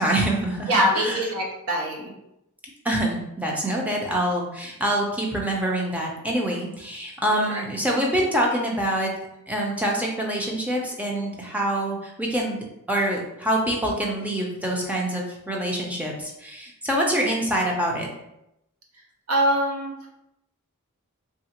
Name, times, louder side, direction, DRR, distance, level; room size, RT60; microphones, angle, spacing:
voice 1, 0.0-1.2 2.8-9.1 9.5-12.6 12.9-18.1, right 1 dB, 5° right, -1 dB, 0.5 m, -25 dB
voice 2, 0.7-2.1 7.3-7.7 19.3-20.1, equal, 70° right, 0 dB, 0.6 m, -24 dB
3.4 x 2.4 x 2.9 m, 0.84 s
head